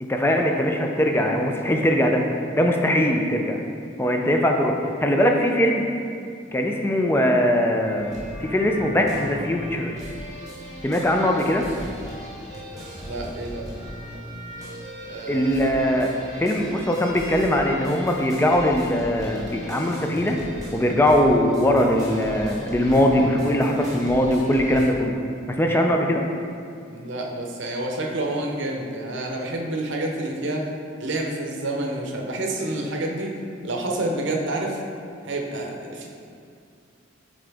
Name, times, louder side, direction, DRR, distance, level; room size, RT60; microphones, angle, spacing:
voice 1, 0.0-2.2 2.5-3.6 4.0-4.7 5.0-5.8 6.5-9.9 10.8-11.7 15.3-16.1 16.4-20.4 20.7-25.1 25.5-26.2, equal, 10° left, 2 dB, 0.4 m, -21 dB
sound 1, 7.8-24.9, equal, 20° right, 0.9 m, -37 dB
voice 2, 13.0-13.7 15.1-15.6 26.9-30.7 31.0-33.4 33.6-34.8 35.2-36.1, right 2 dB, 60° right, 0 dB, 0.7 m, -28 dB
7.2 x 3.8 x 3.4 m, 2.3 s
head